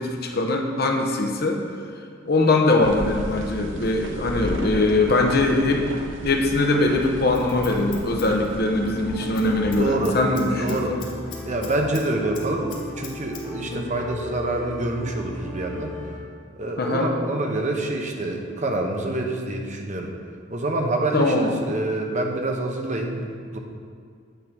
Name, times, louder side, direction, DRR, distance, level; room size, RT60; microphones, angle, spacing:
voice 1, 0.0-1.6 2.3-5.9 6.2-11.0 13.7-13.8 16.8-17.1 21.1-21.7, left 2 dB, 55° left, 2 dB, 0.9 m, -22 dB
sound 1, 2.8-9.8, right 1 dB, 85° right, 0.7 m, -35 dB
Scissors, 7.0-9.0 9.3-9.5 9.7-12.1 12.3-13.4 13.7-13.8, left 7 dB, 75° left, 1.5 m, -41 dB
sound 2, 7.4-16.2, left 3 dB, 5° left, 2.2 m, -37 dB
voice 2, 9.8-10.2 10.6-10.9 11.4-16.0 16.6-20.1 20.5-23.6, right 2 dB, 40° right, 2 dB, 0.9 m, -26 dB
9.2 x 3.9 x 5.9 m, 2.1 s
head